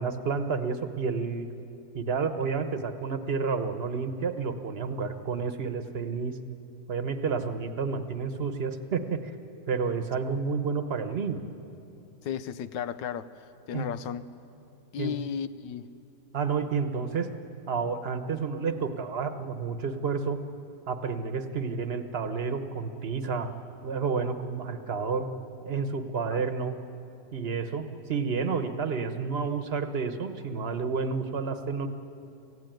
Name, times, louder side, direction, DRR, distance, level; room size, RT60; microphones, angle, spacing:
voice 1, 0.0-1.5 1.9-6.4 6.9-9.3 9.7-11.4 13.7-13.9 15.0-15.1 16.3-17.3 17.7-20.4 20.9-23.5 23.8-25.3 25.6-26.7 27.3-31.9, right 5 dB, 40° right, 8 dB, 1.1 m, -30 dB
voice 2, 12.2-14.2 14.9-15.9 26.3-26.4, left 8 dB, 85° left, 13 dB, 1.4 m, -34 dB
25.5 x 16.0 x 9.2 m, 2.8 s
omnidirectional pair, 1.9 m